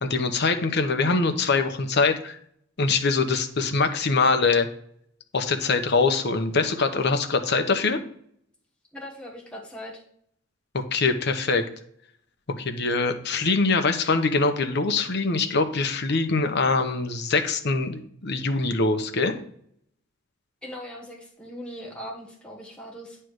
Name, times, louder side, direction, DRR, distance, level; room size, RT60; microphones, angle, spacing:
voice 1, 0.0-2.4 2.8-4.7 5.3-8.0 10.7-11.6 12.5-19.3, left 4 dB, 55° left, 7 dB, 0.9 m, -23 dB
voice 2, 8.9-10.0 20.6-23.2, equal, 5° left, -4 dB, 1.4 m, -39 dB
9.3 x 3.3 x 6.4 m, 0.66 s
head